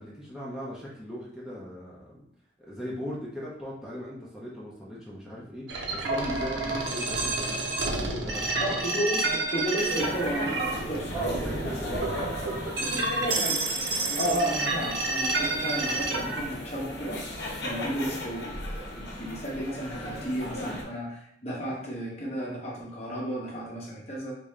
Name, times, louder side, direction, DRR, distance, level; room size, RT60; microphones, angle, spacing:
voice 1, 0.0-2.2 2.6-8.6 11.1-13.4, equal, 5° right, -7 dB, 0.7 m, -39 dB
sound 1, 5.7-16.4, right 2 dB, 85° right, 0.7 m, -29 dB
voice 2, 8.6-11.1 14.2-17.2 17.6-24.3, right 1 dB, 35° left, -3 dB, 0.9 m, -33 dB
sound 2, 9.8-20.8, equal, 75° left, 0.8 m, -36 dB
3.6 x 2.7 x 3.2 m, 0.69 s
head